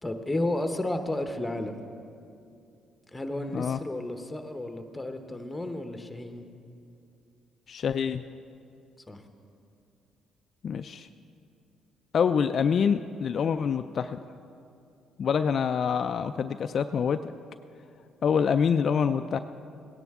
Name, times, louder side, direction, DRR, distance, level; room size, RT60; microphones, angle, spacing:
voice 1, 0.0-1.9 3.1-6.5 9.1-9.2 18.3-18.5, left 1 dB, 15° left, 6 dB, 1.0 m, -32 dB
voice 2, 7.7-8.2 10.6-11.1 12.1-14.2 15.2-17.3 18.2-19.4, left 7 dB, 55° left, 8 dB, 0.3 m, -26 dB
17.0 x 11.0 x 3.6 m, 2.6 s
cardioid pair, 80°, 0 cm